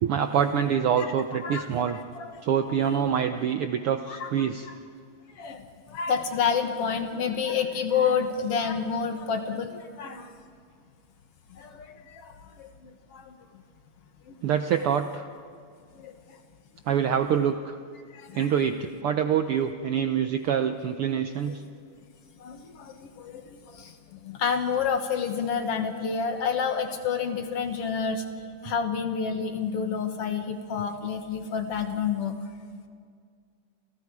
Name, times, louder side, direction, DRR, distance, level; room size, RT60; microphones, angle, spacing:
voice 1, 0.0-2.0 2.4-4.7 14.4-15.2 16.9-17.8 18.3-21.6, right 8 dB, 70° right, 8 dB, 1.3 m, -25 dB
voice 2, 1.0-2.4 4.1-4.8 5.4-10.3 11.5-13.3 14.3-14.4 16.0-16.1 18.1-18.6 21.5-21.6 22.4-28.2 28.6-32.4, left 6 dB, 60° left, 6 dB, 2.2 m, -29 dB
29.0 x 28.5 x 4.8 m, 2.1 s
omnidirectional pair, 3.3 m